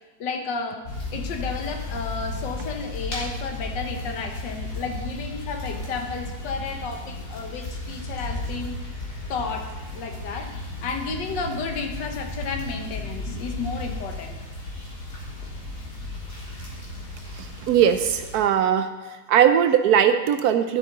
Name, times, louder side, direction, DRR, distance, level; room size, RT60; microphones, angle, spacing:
voice 1, 0.2-0.8 1.1-8.8 9.3-10.5 10.8-14.4, left 4 dB, 75° left, 4 dB, 1.7 m, -32 dB
sound 1, 0.8-18.4, left 2 dB, 60° left, 3.1 m, -34 dB
voice 2, 17.7-18.9 19.3-20.8, right 9 dB, 70° right, 9 dB, 0.9 m, -19 dB
11.5 x 9.1 x 3.9 m, 1.3 s
omnidirectional pair, 2.0 m